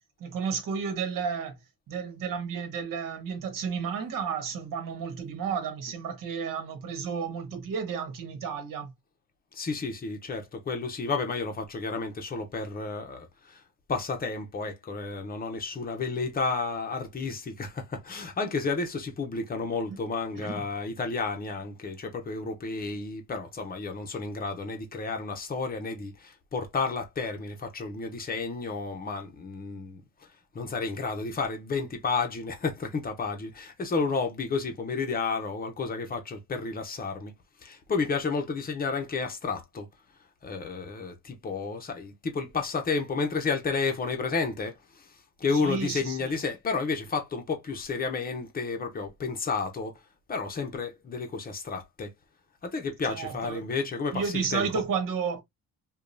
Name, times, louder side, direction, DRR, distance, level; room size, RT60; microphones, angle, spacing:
voice 1, 0.2-1.6 1.9-8.9 19.9-20.0 20.4-20.6 45.5-46.4 53.0-53.6 54.1-55.4, right 6 dB, 60° right, 1.4 m, -32 dB
voice 2, 9.5-13.6 13.9-30.0 30.5-37.3 37.6-39.9 40.4-50.0 50.3-52.1 52.6-54.9, left 4 dB, 25° left, 0.7 m, -31 dB
5.0 x 2.4 x 2.6 m
cardioid pair, 155°, 36 cm